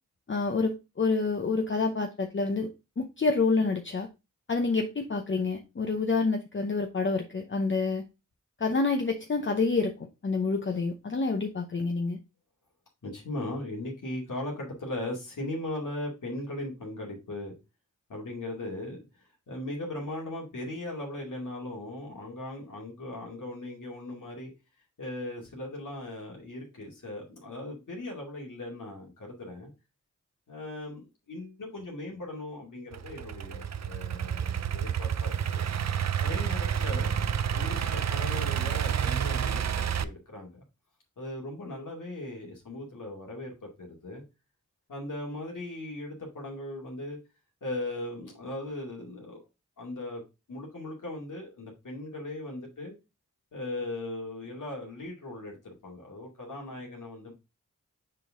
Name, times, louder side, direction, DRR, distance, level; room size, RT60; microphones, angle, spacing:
voice 1, 0.3-2.7 3.0-4.1 4.5-8.0 8.6-9.9 10.2-12.2, left 4 dB, 40° left, 0.8 m, -28 dB
voice 2, 13.0-17.5 18.1-24.5 25.0-29.7 30.5-35.6 36.2-37.2 37.5-40.6 41.2-44.2 44.9-47.2 47.6-49.4 49.8-50.2 50.5-52.9 53.5-57.3, left 1 dB, 80° left, 2.4 m, -38 dB
Idling / Accelerating revving vroom, 32.9-40.0, right 8 dB, 60° right, 0.5 m, -29 dB
6.6 x 4.0 x 3.6 m
cardioid pair, 55°, 31 cm